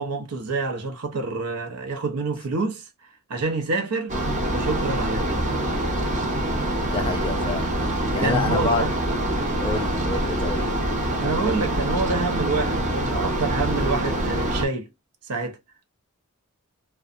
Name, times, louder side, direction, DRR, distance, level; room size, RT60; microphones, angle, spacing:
voice 1, 0.0-2.8 3.3-4.2 4.5-5.4 8.2-8.9 11.2-14.9 15.3-15.6, right 3 dB, 85° right, 0.7 m, -27 dB
sound 1, 4.1-14.7, right 1 dB, 35° right, 0.7 m, -25 dB
voice 2, 6.8-7.7 8.1-8.9 9.6-10.6, left 3 dB, 25° left, 0.6 m, -27 dB
2.6 x 2.2 x 2.4 m
head